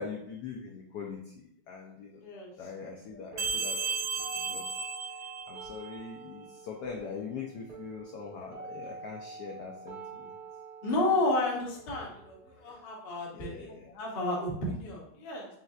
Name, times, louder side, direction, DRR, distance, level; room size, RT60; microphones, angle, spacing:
voice 1, 0.0-2.3 2.6-3.9 4.3-4.6 5.5-10.3 13.3-13.9, left 5 dB, 75° left, 0 dB, 0.9 m, -42 dB
voice 2, 2.2-2.5 10.8-15.5, left 2 dB, 50° left, -2 dB, 0.7 m, -32 dB
sound 1, 3.3-13.3, right 4 dB, 50° right, 1.4 m, -47 dB
sound 2, 3.4-5.9, right 5 dB, 75° right, 1.2 m, -34 dB
5.5 x 3.2 x 2.4 m, 0.72 s
omnidirectional pair, 2.3 m